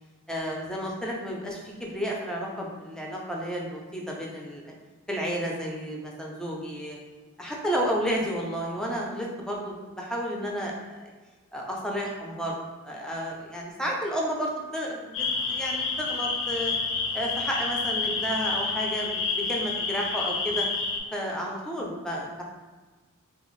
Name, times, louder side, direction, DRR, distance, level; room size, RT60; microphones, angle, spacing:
voice 1, 0.3-4.7 5.1-7.0 7.4-11.1 11.5-12.6 12.8-16.7 17.1-20.7 21.1-22.4, equal, 5° left, -2 dB, 0.4 m, -32 dB
sound 1, 15.1-21.0, left 4 dB, 65° left, 0.5 m, -29 dB
3.4 x 2.3 x 3.1 m, 1.3 s
head